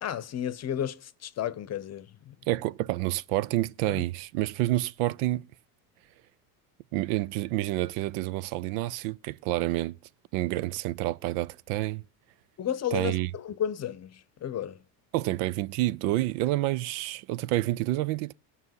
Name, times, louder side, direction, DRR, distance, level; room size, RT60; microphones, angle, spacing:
voice 1, 0.0-2.3 3.9-4.0 12.6-14.8, left 10 dB, 35° left, 0.8 m, -33 dB
voice 2, 2.5-5.5 6.9-10.0 10.3-12.0 12.9-13.3 15.1-18.3, right 16 dB, 75° right, 0.6 m, -28 dB
16.5 x 5.7 x 9.4 m
supercardioid pair, 115°, 46 cm